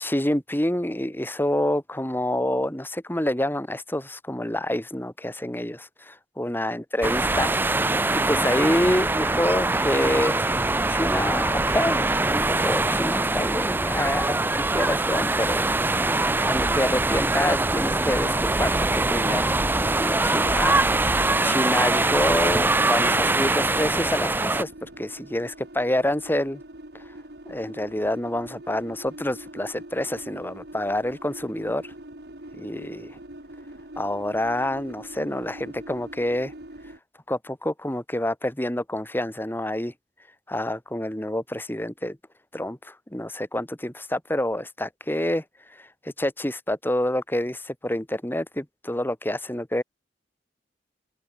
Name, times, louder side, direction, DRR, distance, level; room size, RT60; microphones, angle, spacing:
voice 1, 0.0-7.5 7.8-10.4 10.9-16.0 16.4-19.6 19.9-20.8 21.4-26.6 27.5-31.9 32.5-33.2 34.0-36.5 37.3-39.9 40.5-42.2 42.5-45.4 45.8-49.8, left 1 dB, 10° left, 2.1 m, -27 dB
sound 1, 7.0-24.6, right 2 dB, 10° right, 0.5 m, -23 dB
sound 2, 18.1-37.0, right 1 dB, 60° right, 3.5 m, -43 dB
open air
head